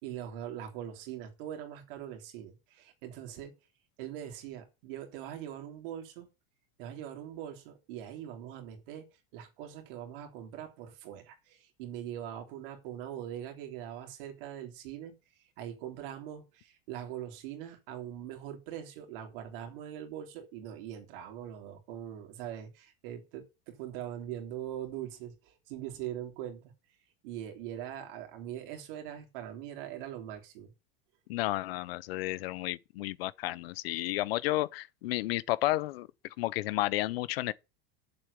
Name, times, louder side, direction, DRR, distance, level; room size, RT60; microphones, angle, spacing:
voice 1, 0.0-3.5 4.0-6.3 6.8-9.1 9.3-15.2 15.6-26.7 27.2-30.7, right 11 dB, 70° right, 3.2 m, -42 dB
voice 2, 31.3-36.1 36.4-37.5, left 17 dB, 90° left, 0.7 m, -32 dB
7.7 x 7.4 x 6.8 m
supercardioid pair, 155°, 29 cm